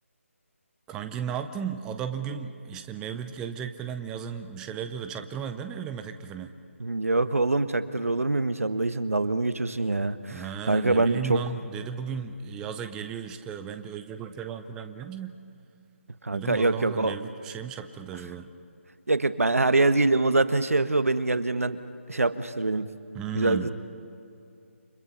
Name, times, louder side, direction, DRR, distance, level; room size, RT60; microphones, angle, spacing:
voice 1, 0.9-6.5 10.3-15.3 16.3-18.5 23.1-23.7, right 7 dB, 10° right, 8 dB, 0.5 m, -35 dB
voice 2, 6.8-11.4 16.2-17.1 19.1-21.8 22.1-22.9 23.3-23.7, right 2 dB, 80° right, 12 dB, 1.2 m, -24 dB
29.5 x 25.5 x 5.7 m, 2.5 s
figure-of-eight pair, 155°, 8 cm